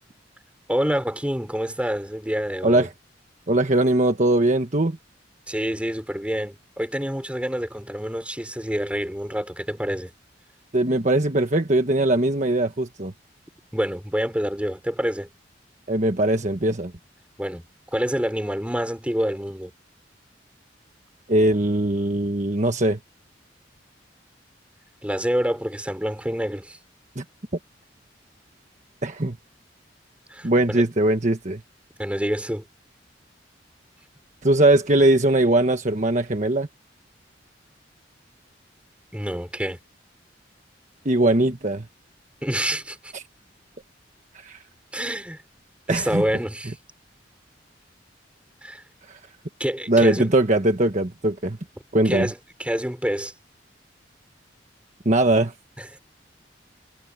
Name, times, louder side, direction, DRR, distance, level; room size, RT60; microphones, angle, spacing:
voice 1, 0.7-2.9 5.5-10.1 13.7-15.3 17.4-17.6 17.9-19.7 25.0-26.8 30.3-30.9 32.0-32.7 39.1-39.8 42.4-43.1 44.9-45.4 45.9-46.8 48.6-48.8 49.6-50.3 52.0-53.3 55.8-55.9, equal, 5° right, 4.5 m, -27 dB
voice 2, 3.5-5.0 10.7-13.1 15.9-16.9 21.3-23.0 27.2-27.3 29.0-29.4 30.4-31.6 34.4-36.7 41.0-41.8 43.1-43.2 44.4-44.6 45.9-46.2 49.9-51.6 51.9-52.3 55.0-55.5, right 1 dB, 40° right, 1.3 m, -20 dB
head